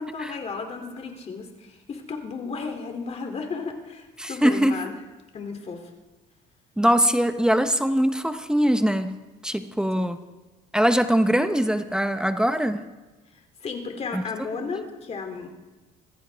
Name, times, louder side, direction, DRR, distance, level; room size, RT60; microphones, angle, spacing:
voice 1, 0.0-5.0 5.3-5.9 9.9-10.1 13.6-15.5, left 4 dB, 40° left, 4 dB, 2.8 m, -34 dB
voice 2, 4.2-4.8 6.8-9.2 9.4-10.2 10.7-12.8 14.1-14.2, equal, 5° right, 9 dB, 0.8 m, -22 dB
24.5 x 15.0 x 3.4 m, 1.2 s
cardioid pair, 110°, 17 cm